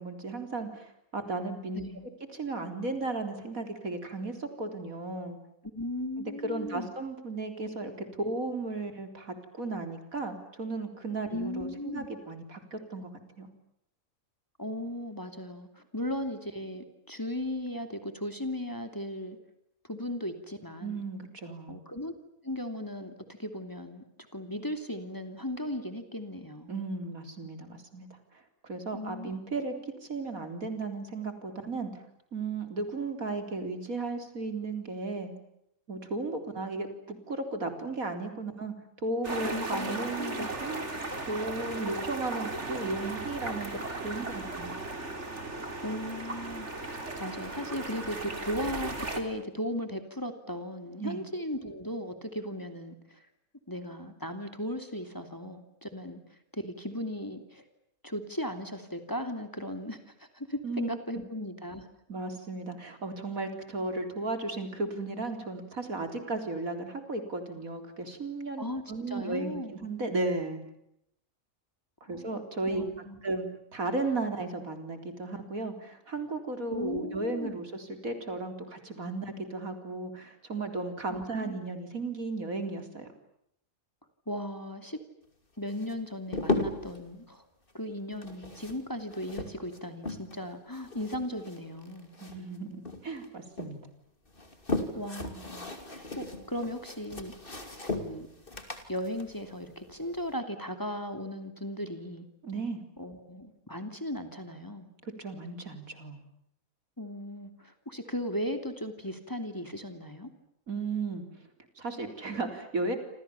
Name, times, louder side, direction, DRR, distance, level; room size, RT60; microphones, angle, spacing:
voice 1, 0.0-1.8 2.3-5.4 6.2-7.9 8.2-13.1 13.4-13.5 20.8-21.8 26.7-28.1 28.6-29.7 30.0-32.0 32.3-35.3 35.9-38.7 39.0-40.8 41.3-43.8 44.0-44.7 51.0-51.2 60.6-60.9 62.1-70.6 72.1-72.8 73.2-73.5 73.7-83.1 92.2-93.8 102.4-102.8 105.0-106.2 110.7-111.2 111.8-113.0, right 3 dB, 75° right, 7 dB, 4.3 m, -35 dB
voice 2, 1.7-2.1 5.7-6.9 11.3-12.1 14.6-19.4 19.9-21.0 21.7-22.1 22.4-23.1 23.4-24.0 24.3-26.7 28.9-29.4 39.5-40.5 45.8-53.3 53.7-57.6 58.0-61.9 68.6-69.7 72.0-72.3 72.7-73.2 76.7-77.6 81.3-81.6 84.3-85.0 85.6-87.4 87.7-92.1 94.9-97.3 97.8-98.3 98.9-102.3 103.0-104.9 107.0-110.3, left 1 dB, 15° left, 7 dB, 3.0 m, -37 dB
sound 1, 39.2-49.2, right 2 dB, 50° right, 4.0 m, -36 dB
sound 2, 85.7-87.0 88.1-90.5 90.7-92.6 92.9-93.7 94.3-100.3, left 2 dB, 40° left, 3.1 m, -36 dB
28.0 x 27.5 x 7.1 m, 0.76 s
omnidirectional pair, 1.5 m